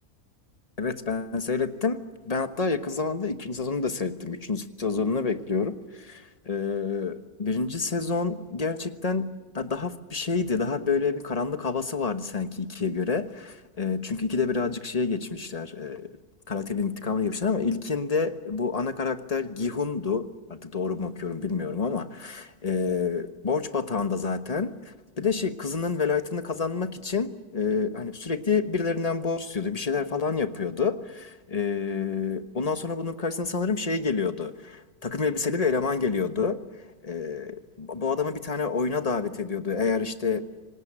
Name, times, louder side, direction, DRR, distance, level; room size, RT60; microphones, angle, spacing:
voice 1, 0.8-9.3 9.5-16.1 16.5-36.6 37.0-40.4, left 5 dB, 25° left, 10 dB, 1.2 m, -28 dB
26.5 x 19.0 x 8.8 m, 1.2 s
omnidirectional pair, 1.6 m